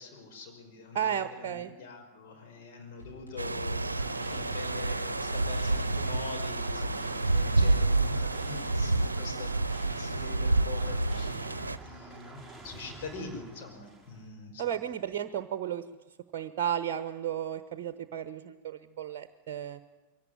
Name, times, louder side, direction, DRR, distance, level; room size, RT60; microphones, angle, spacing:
voice 1, 0.0-9.7 9.9-14.9, left 4 dB, 50° left, 3 dB, 5.6 m, -44 dB
voice 2, 0.9-1.7 14.6-15.9 16.3-19.8, right 9 dB, 45° right, 13 dB, 1.0 m, -33 dB
sound 1, 3.0-11.7, left 2 dB, 80° left, 6.5 m, -48 dB
sound 2, 3.4-11.8, right 2 dB, 80° right, 0.7 m, -29 dB
sound 3, 3.5-14.3, right 3 dB, 5° left, 5.2 m, -48 dB
22.5 x 18.0 x 10.0 m, 1.1 s
figure-of-eight pair, 90°, 0 cm